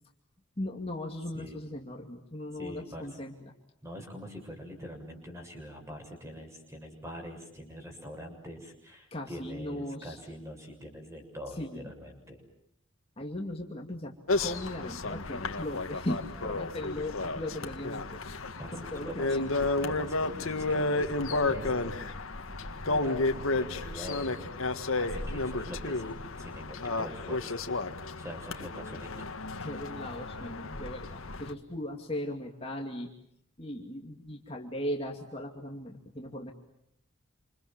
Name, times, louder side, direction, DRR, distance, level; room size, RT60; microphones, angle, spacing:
voice 1, 0.6-3.5 9.1-10.2 11.5-11.9 13.2-14.1 14.4-18.2 18.7-19.5 29.6-33.1 33.6-36.5, left 1 dB, 25° left, 1 dB, 2.5 m, -38 dB
voice 2, 2.5-3.2 3.8-12.4 18.6-19.4 19.8-22.0 22.8-27.6 28.2-29.3, equal, 15° right, 3 dB, 6.9 m, -44 dB
sound 1, 14.3-31.5, left 2 dB, 85° left, 1.8 m, -32 dB
29.0 x 27.5 x 7.5 m, 0.77 s
head